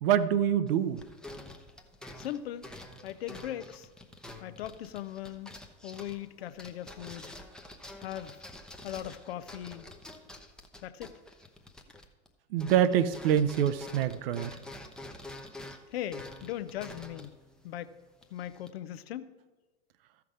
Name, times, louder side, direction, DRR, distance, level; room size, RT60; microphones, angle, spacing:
voice 1, 0.0-1.0 12.5-14.6, right 9 dB, 50° right, 0.7 m, -26 dB
sound 1, 0.7-12.3 12.6-18.7, left 1 dB, ahead, 0.7 m, -48 dB
voice 2, 2.2-2.7 3.0-3.9 4.4-5.5 5.8-7.3 8.0-8.4 8.8-9.9 10.8-11.1 15.9-17.4 17.6-17.9 18.3-19.3, left 12 dB, 55° left, 0.6 m, -39 dB
14.0 x 5.9 x 4.9 m
figure-of-eight pair, 85°, 38 cm